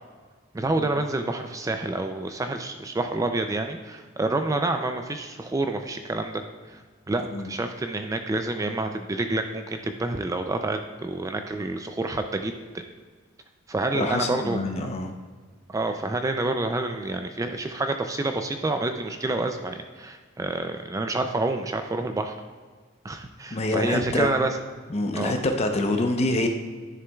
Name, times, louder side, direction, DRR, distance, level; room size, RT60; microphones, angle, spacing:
voice 1, 0.5-6.8 7.1-12.5 13.7-14.7 15.7-22.4 23.0-24.5 25.1-25.3, right 2 dB, 15° right, 6 dB, 0.4 m, -28 dB
voice 2, 13.9-15.1 23.5-24.3 24.9-26.5, left 2 dB, 35° left, 4 dB, 0.7 m, -26 dB
11.0 x 6.8 x 2.3 m, 1.5 s
head